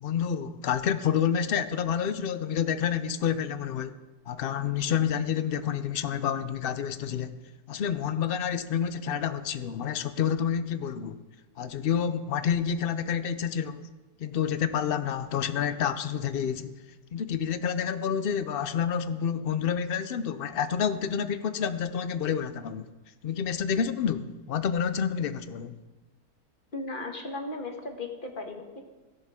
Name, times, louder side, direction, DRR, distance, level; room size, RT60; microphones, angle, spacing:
voice 1, 0.0-4.0 4.3-7.3 7.7-11.2 11.6-13.9 14.2-16.7 17.1-22.9 23.2-25.8, left 8 dB, 65° left, 12 dB, 0.5 m, -29 dB
voice 2, 26.7-28.8, left 2 dB, 35° left, 3 dB, 1.5 m, -36 dB
16.5 x 11.0 x 3.6 m, 1.2 s
omnidirectional pair, 1.6 m